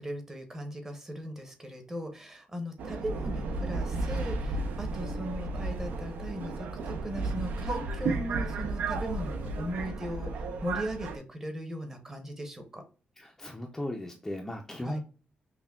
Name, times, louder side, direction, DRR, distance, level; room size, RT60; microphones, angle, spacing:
voice 1, 0.0-12.8 14.8-15.0, equal, 15° right, 5 dB, 0.8 m, -38 dB
Subway metro underground, 2.8-11.2, right 3 dB, 85° right, 0.5 m, -33 dB
voice 2, 13.2-15.0, left 1 dB, 10° left, 1 dB, 0.4 m, -37 dB
5.5 x 2.1 x 2.3 m, 0.37 s
wide cardioid pair, 165°, 3 cm